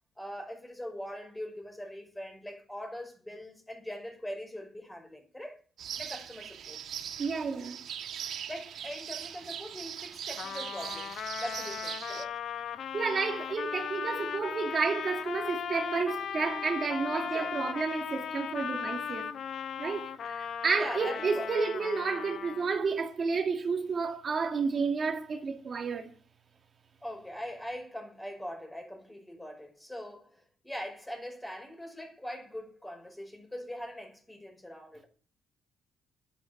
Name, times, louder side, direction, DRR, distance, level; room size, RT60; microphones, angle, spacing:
voice 1, 0.2-5.6 6.0-6.8 8.5-12.3 17.1-17.6 20.8-21.5 27.0-35.1, equal, 10° left, 5.6 m, -42 dB
sound 1, 5.8-12.2, right 9 dB, 70° right, 1.5 m, -40 dB
voice 2, 7.2-7.8 12.9-19.3 19.8-26.1, right 5 dB, 45° right, 2.0 m, -31 dB
Trumpet, 10.4-22.8, left 8 dB, 60° left, 1.0 m, -37 dB
11.0 x 9.9 x 5.9 m
cardioid pair, 90°, 0 cm